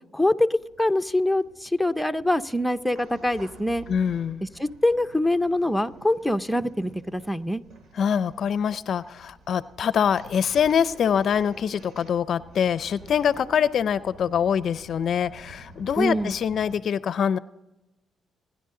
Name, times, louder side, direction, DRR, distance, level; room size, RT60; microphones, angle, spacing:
voice 1, 0.1-3.9 4.4-7.6 16.0-16.3, left 1 dB, 5° left, 7 dB, 0.7 m, -24 dB
sound 1, 0.6-16.7, right 2 dB, 70° right, 2.5 m, -49 dB
voice 2, 3.9-4.5 7.9-17.4, left 8 dB, 60° left, 15 dB, 0.5 m, -24 dB
27.0 x 10.5 x 3.8 m, 0.98 s
cardioid pair, 90°, 0 cm